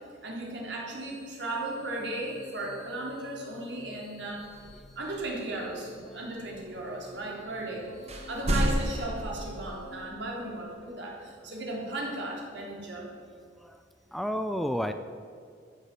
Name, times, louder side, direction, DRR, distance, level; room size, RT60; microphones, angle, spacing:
voice 1, 0.2-4.4 5.0-7.9 8.3-13.2, right 2 dB, 75° right, -2 dB, 3.7 m, -36 dB
sound 1, 1.0-10.1, left 2 dB, 65° left, 3.7 m, -51 dB
sound 2, 4.4-5.6 6.5-7.3 7.5-7.6 7.9-9.9, equal, 35° right, 1.6 m, -32 dB
voice 2, 14.1-14.9, equal, ahead, 8 dB, 0.5 m, -31 dB
14.5 x 8.4 x 7.6 m, 2.2 s
head